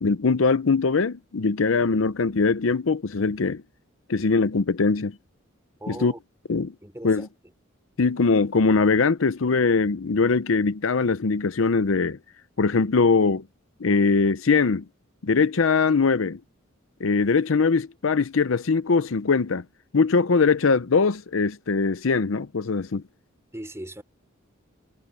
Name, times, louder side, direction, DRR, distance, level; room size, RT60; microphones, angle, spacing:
voice 1, 0.0-3.6 4.1-5.2 5.9-6.1 6.5-6.7 7.0-7.3 8.0-12.2 12.6-13.4 13.8-14.8 15.2-16.4 17.0-19.6 19.9-23.0, left 4 dB, 70° left, 0.6 m, -21 dB
voice 2, 5.8-6.2 6.8-7.3 23.5-24.0, right 1 dB, 15° right, 3.4 m, -38 dB
head